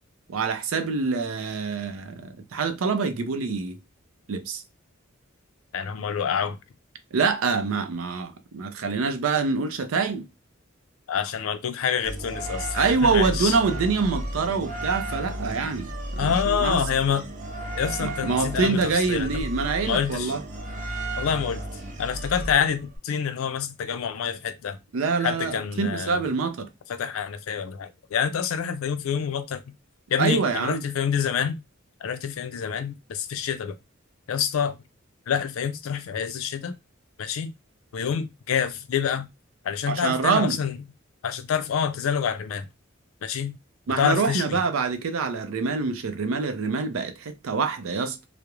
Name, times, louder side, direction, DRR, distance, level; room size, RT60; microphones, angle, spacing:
voice 1, 0.3-3.8 4.3-4.6 7.1-10.3 12.7-16.9 18.0-20.4 24.9-26.7 30.2-30.8 39.9-40.6 43.9-48.2, right 4 dB, 90° right, 0.5 m, -25 dB
voice 2, 5.7-6.6 11.1-13.6 16.2-17.3 17.8-18.8 19.1-19.4 19.8-20.3 21.2-21.6 22.0-24.8 25.2-26.2 26.9-29.6 30.1-31.6 32.0-33.7 34.3-34.8 35.3-36.8 37.2-37.5 37.9-39.3 39.6-40.8 41.2-42.7 43.2-43.6 44.0-44.6, left 7 dB, 80° left, 0.4 m, -27 dB
sound 1, 12.0-23.0, right 1 dB, 40° right, 0.5 m, -33 dB
2.4 x 2.0 x 2.9 m
head